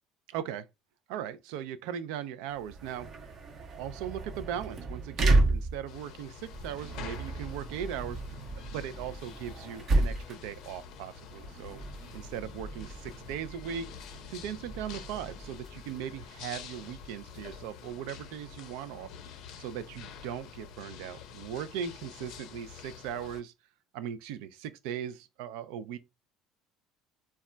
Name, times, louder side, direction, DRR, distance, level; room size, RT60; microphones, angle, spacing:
voice 1, 0.3-0.7 1.1-3.1 3.8-8.2 8.5-11.8 12.1-13.9 14.3-19.1 19.6-23.5 23.9-26.0, right 9 dB, 80° right, 0.3 m, -38 dB
sound 1, 2.5-17.9, right 2 dB, 40° right, 0.7 m, -33 dB
sound 2, 5.9-23.4, left 8 dB, 65° left, 0.5 m, -48 dB
2.2 x 2.2 x 3.7 m
supercardioid pair, 115°, 0 cm